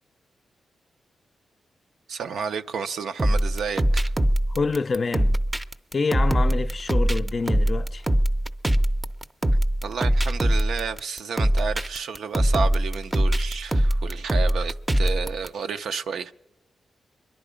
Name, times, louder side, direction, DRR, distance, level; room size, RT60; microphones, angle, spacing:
voice 1, 2.1-4.1 9.8-16.3, right 6 dB, 85° right, 0.5 m, -31 dB
sound 1, 3.2-15.5, right 1 dB, 20° right, 0.6 m, -22 dB
voice 2, 4.5-5.4 5.9-8.0, left 4 dB, 50° left, 0.5 m, -27 dB
23.5 x 11.0 x 5.0 m
cardioid pair, 60°, 0 cm